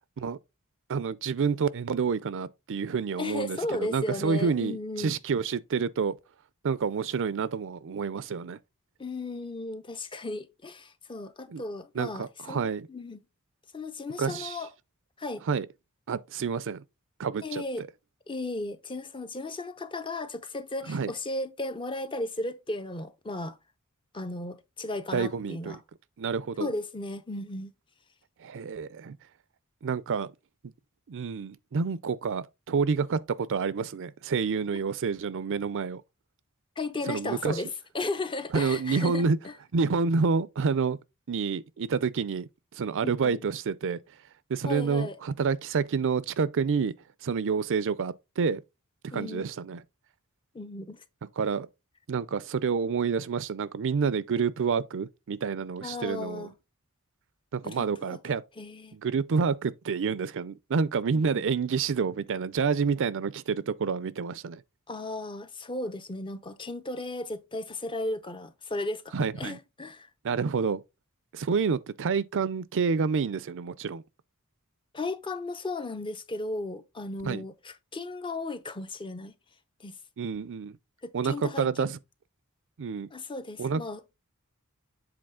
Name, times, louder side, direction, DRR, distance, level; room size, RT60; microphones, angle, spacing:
voice 1, 0.9-6.1 6.6-8.6 11.5-11.6 11.9-12.9 14.2-14.6 15.5-15.7 16.1-16.8 17.2-17.9 20.9-21.1 25.1-25.8 26.2-26.7 28.4-29.2 29.8-30.3 31.1-36.0 37.1-37.6 38.5-39.4 39.7-41.0 41.3-42.5 42.7-44.0 44.5-46.9 47.2-48.6 49.1-49.8 51.4-51.7 52.1-56.5 57.5-58.4 58.9-64.6 69.1-69.6 70.2-70.8 71.3-74.0 77.2-77.4 80.2-80.8 81.1-82.0 82.8-83.1 83.6-83.8, right 5 dB, 60° right, 0.5 m, -28 dB
voice 2, 3.2-5.2 9.0-12.6 12.9-13.2 13.7-14.7 15.2-15.4 17.4-17.8 18.3-23.6 24.1-25.8 26.6-27.7 36.8-39.5 43.0-43.4 44.7-45.2 49.1-49.4 50.5-51.0 55.8-56.5 57.6-58.2 58.6-59.0 61.1-61.4 64.9-70.1 74.9-79.3 79.8-80.0 81.0-81.9 83.1-84.0, left 2 dB, 20° left, 0.6 m, -35 dB
7.8 x 3.9 x 3.6 m
head